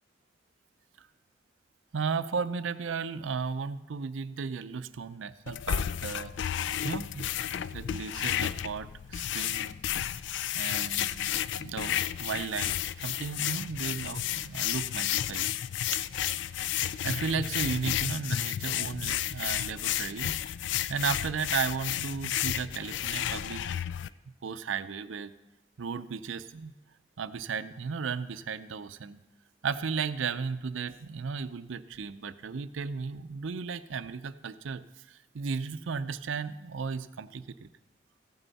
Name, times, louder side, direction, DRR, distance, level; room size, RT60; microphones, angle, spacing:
voice 1, 1.9-6.3 6.8-7.3 7.7-9.8 10.5-15.5 15.9-16.0 16.6-20.4 20.9-23.6 24.3-25.3 25.8-26.7 27.2-29.2 29.6-37.7, right 5 dB, 80° right, 13 dB, 0.5 m, -35 dB
sound 1, 5.5-24.1, left 11 dB, 65° left, 0.3 m, -32 dB
15.0 x 9.1 x 4.1 m, 1.1 s
head